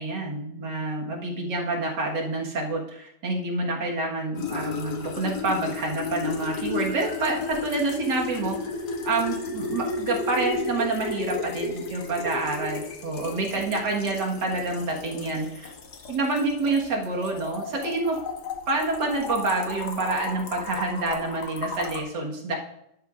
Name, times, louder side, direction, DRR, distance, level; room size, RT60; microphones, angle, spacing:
voice 1, 0.0-8.6 9.0-15.7 16.1-18.2 18.7-22.6, right 2 dB, 80° right, -1 dB, 2.3 m, -28 dB
sound 1, 4.3-22.0, left 4 dB, 70° left, 1.7 m, -33 dB
13.0 x 11.0 x 2.5 m, 0.80 s
omnidirectional pair, 1.8 m